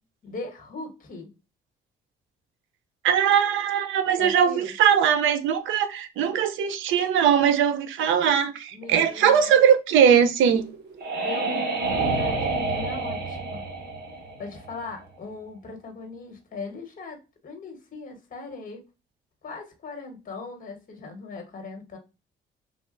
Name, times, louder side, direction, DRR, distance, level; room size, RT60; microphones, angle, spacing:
voice 1, 0.2-1.3 4.2-4.7 8.7-9.6 11.1-13.6 14.4-17.2 17.4-18.8 19.4-22.0, left 3 dB, 45° left, 1.2 m, -39 dB
voice 2, 3.0-10.6, right 8 dB, 80° right, 0.6 m, -20 dB
sound 1, 10.4-15.0, right 3 dB, 55° right, 1.1 m, -28 dB
3.3 x 2.3 x 2.5 m
cardioid pair, 90°, 20 cm